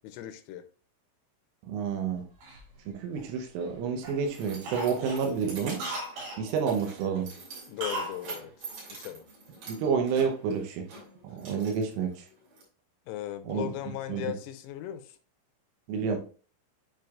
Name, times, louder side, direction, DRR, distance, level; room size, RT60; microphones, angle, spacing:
voice 1, 0.0-0.6 7.7-8.5 8.9-9.3 13.1-15.2, left 12 dB, 85° left, 9 dB, 3.3 m, -37 dB
voice 2, 1.7-2.2 2.9-5.8 6.4-7.3 9.6-10.9 11.2-12.3 13.4-13.7 14.1-14.3 15.9-16.2, right 6 dB, 80° right, 3 dB, 3.4 m, -29 dB
Cough, 2.4-3.7 4.0-4.3 4.6-6.4 7.8-8.2 8.4-8.5, right 1 dB, 65° right, 3.9 m, -37 dB
Keys jangling, 3.5-12.6, right 4 dB, 45° right, 3.6 m, -47 dB
9.2 x 4.6 x 2.4 m, 0.38 s
omnidirectional pair, 5.9 m